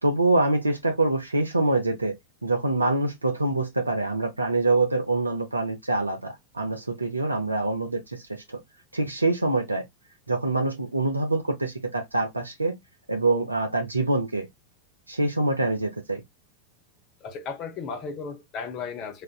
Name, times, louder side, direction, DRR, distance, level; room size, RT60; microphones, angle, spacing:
voice 1, 0.0-2.1 2.4-8.6 8.9-9.9 10.3-12.8 13.1-14.5 15.1-16.2, right 2 dB, 80° right, 0.4 m, -25 dB
voice 2, 17.2-19.2, left 5 dB, 35° left, 0.9 m, -35 dB
4.2 x 2.5 x 2.3 m
figure-of-eight pair, 90°, 0 cm